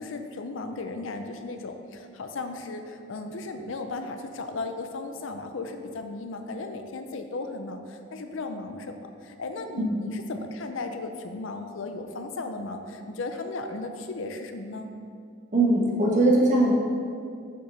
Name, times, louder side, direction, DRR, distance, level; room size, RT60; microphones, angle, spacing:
voice 1, 0.0-14.9, left 3 dB, 65° left, 6 dB, 0.5 m, -36 dB
voice 2, 15.5-16.7, right 2 dB, 35° right, -4 dB, 1.4 m, -20 dB
6.9 x 4.8 x 5.7 m, 2.4 s
head